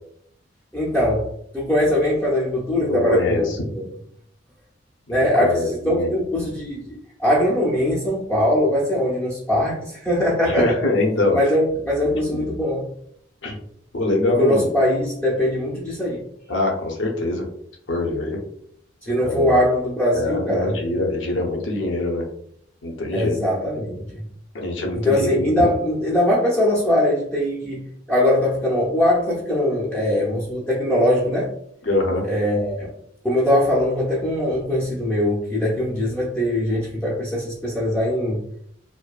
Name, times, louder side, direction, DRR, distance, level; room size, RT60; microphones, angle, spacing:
voice 1, 0.7-3.8 5.1-10.8 11.3-12.9 14.4-16.2 19.0-20.7 23.1-24.2 24.9-31.5 32.3-32.9 33.2-38.4, left 1 dB, 10° left, -6 dB, 0.5 m, -21 dB
voice 2, 2.8-3.6 5.1-6.1 10.5-11.4 12.0-12.4 13.4-13.6 13.9-14.7 16.5-17.5 17.9-18.4 19.2-19.6 20.1-22.3 22.8-23.4 24.5-25.7 31.8-32.2, left 2 dB, 85° left, 1 dB, 0.6 m, -24 dB
2.6 x 2.2 x 2.3 m, 0.68 s
head